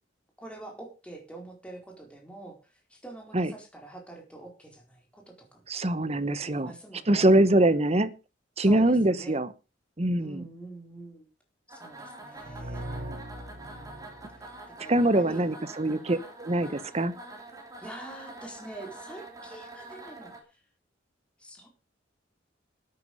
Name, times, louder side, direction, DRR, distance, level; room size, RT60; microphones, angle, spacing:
voice 1, 0.4-5.6 6.0-6.1 6.4-7.4 8.6-9.4 10.2-11.3 11.7-12.8 13.5-14.5 14.8-15.6 15.8-16.1 17.8-20.6 21.4-21.7, right 2 dB, 5° left, 4.3 m, -45 dB
voice 2, 5.7-6.7 7.1-8.1 8.6-9.5 10.0-10.4 12.8-13.2 14.9-17.1, right 1 dB, 35° right, 1.0 m, -24 dB
sound 1, 11.7-20.4, right 2 dB, 20° right, 3.3 m, -46 dB
sound 2, 12.4-15.2, right 1 dB, 55° right, 6.5 m, -41 dB
13.0 x 9.6 x 5.4 m
head